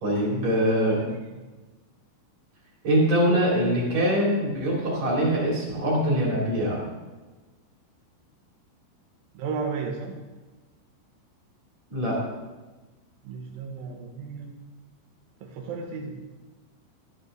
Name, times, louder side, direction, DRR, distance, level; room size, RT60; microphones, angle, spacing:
voice 1, 0.0-1.0 2.8-6.8 11.9-12.2, equal, 40° right, -4 dB, 3.7 m, -23 dB
voice 2, 1.0-1.4 9.3-10.2 13.2-14.5 15.4-16.2, right 5 dB, 70° right, -1 dB, 2.4 m, -34 dB
13.5 x 12.5 x 3.4 m, 1.2 s
omnidirectional pair, 5.5 m